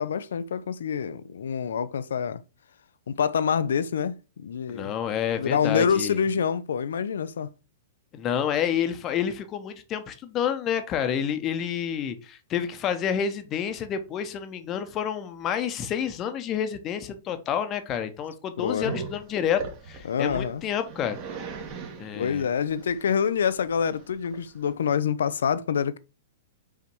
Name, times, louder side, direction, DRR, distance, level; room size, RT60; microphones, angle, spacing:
voice 1, 0.0-2.4 3.1-4.9 5.4-7.5 18.6-18.9 20.0-20.6 22.1-26.0, left 7 dB, 60° left, 0.6 m, -26 dB
voice 2, 4.7-6.2 8.1-19.6 19.9-21.2 22.0-22.5, left 8 dB, 25° left, 1.0 m, -29 dB
Growling, 18.8-24.7, right 5 dB, 35° right, 1.7 m, -39 dB
5.5 x 4.9 x 4.6 m
figure-of-eight pair, 105°, 0 cm